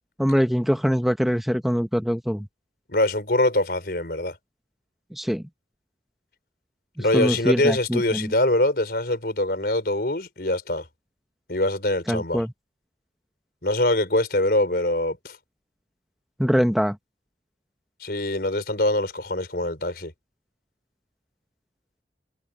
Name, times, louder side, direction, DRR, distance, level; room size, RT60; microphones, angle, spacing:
voice 1, 0.2-2.4 5.1-5.4 7.0-8.3 12.1-12.5 16.4-17.0, equal, ahead, 0.8 m, -23 dB
voice 2, 2.9-4.4 7.0-10.9 11.5-12.4 13.6-15.4 18.0-20.1, left 1 dB, 60° left, 4.6 m, -23 dB
head